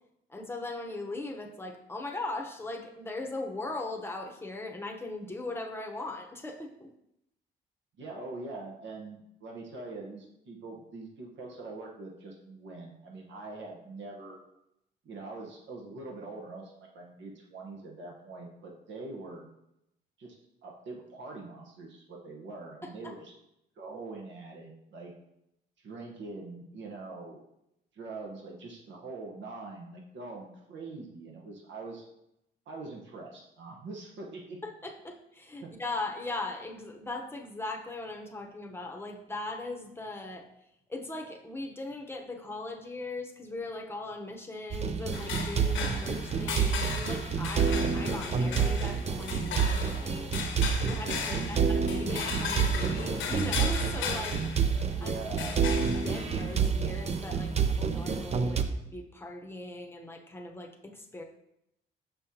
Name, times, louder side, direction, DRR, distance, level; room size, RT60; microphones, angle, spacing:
voice 1, 0.3-6.9 22.8-23.1 34.6-40.5 40.9-50.4 50.8-54.7 55.0-55.2 55.7-58.6 58.9-61.2, left 2 dB, 10° left, 2 dB, 0.9 m, -39 dB
voice 2, 8.0-14.4 15.0-19.4 20.2-20.4 20.6-23.3 23.8-25.1 25.8-27.4 27.9-32.0 32.7-34.6 35.6-35.7 51.4-51.6 54.9-55.5, right 3 dB, 65° right, -1 dB, 1.1 m, -43 dB
sound 1, 44.7-58.6, right 6 dB, 35° right, 0.5 m, -29 dB
sound 2, 45.1-58.3, left 5 dB, 75° left, 0.9 m, -38 dB
6.2 x 5.6 x 2.8 m, 0.82 s
cardioid pair, 90°, 20 cm